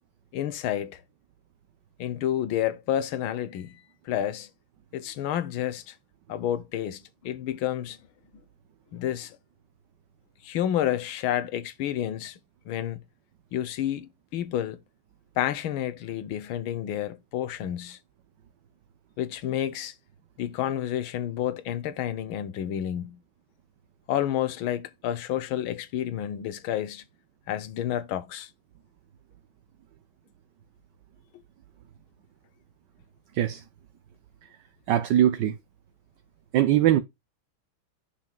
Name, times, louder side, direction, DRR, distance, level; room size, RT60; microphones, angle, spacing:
voice 1, 0.3-1.0 2.0-4.5 4.9-5.9 6.3-8.0 8.9-9.4 10.4-12.4 12.7-13.0 13.5-14.8 15.4-18.0 19.2-19.9 20.4-23.2 24.1-27.0 27.5-28.5, left 11 dB, 85° left, 1.7 m, -30 dB
voice 2, 34.9-35.5 36.5-37.0, right 12 dB, 65° right, 1.3 m, -21 dB
10.5 x 5.7 x 2.3 m
omnidirectional pair, 2.2 m